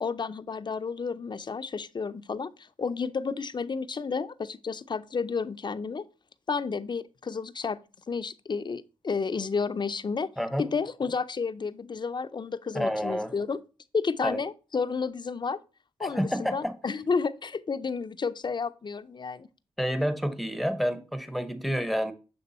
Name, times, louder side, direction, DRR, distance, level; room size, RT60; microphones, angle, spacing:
voice 1, 0.0-6.0 6.5-7.8 8.1-10.3 10.6-13.6 13.9-15.6 16.0-19.5, left 5 dB, 40° left, 0.5 m, -31 dB
voice 2, 12.7-13.3 14.2-14.4 16.0-16.7 19.8-22.1, equal, ahead, 0.8 m, -29 dB
6.8 x 3.4 x 4.1 m
cardioid pair, 50°, 12 cm